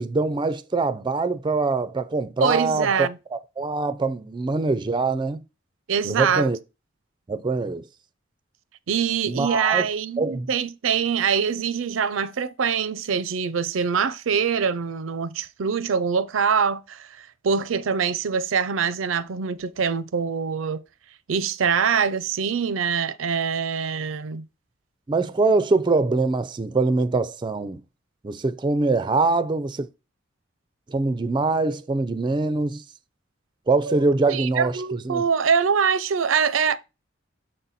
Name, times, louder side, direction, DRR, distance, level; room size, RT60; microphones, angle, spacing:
voice 1, 0.0-3.1 3.6-5.4 6.0-6.6 7.3-7.8 9.3-9.9 10.2-10.5 25.1-27.8 28.2-29.9 30.9-32.8 33.7-35.2, right 3 dB, 25° right, 0.4 m, -23 dB
voice 2, 2.4-3.2 5.9-6.5 8.9-20.8 21.3-24.4 33.9-34.0 34.3-36.8, right 6 dB, 90° right, 0.5 m, -24 dB
6.5 x 4.0 x 4.1 m
head